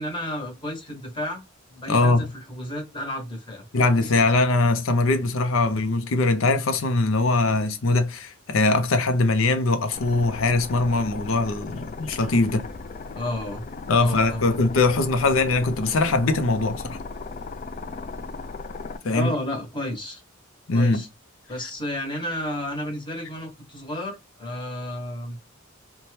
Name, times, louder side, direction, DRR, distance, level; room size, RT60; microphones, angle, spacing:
voice 1, 0.0-3.7 4.0-4.1 13.1-13.6 13.9-14.5 19.1-20.2 20.7-21.1 21.5-25.4, left 1 dB, 25° left, 1.0 m, -32 dB
voice 2, 1.9-2.3 3.7-12.6 13.9-17.0 19.0-19.3 20.7-21.0, left 3 dB, 90° left, 0.6 m, -21 dB
sound 1, 9.9-19.0, left 3 dB, 40° left, 0.3 m, -37 dB
2.7 x 2.2 x 3.1 m
head